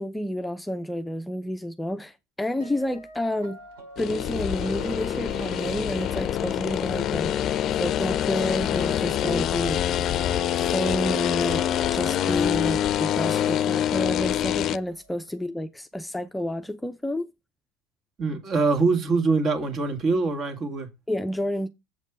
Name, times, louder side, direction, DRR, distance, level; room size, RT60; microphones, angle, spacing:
voice 1, 0.0-3.6 4.0-7.3 7.7-17.3 21.1-21.7, left 1 dB, 5° left, 0.7 m, -30 dB
sound 1, 2.6-15.5, right 3 dB, 80° right, 5.3 m, -46 dB
sound 2, 4.0-14.8, left 10 dB, 50° left, 0.6 m, -25 dB
voice 2, 18.2-20.9, right 4 dB, 45° right, 2.3 m, -23 dB
7.5 x 5.3 x 6.2 m
hypercardioid pair, 80°, 0 cm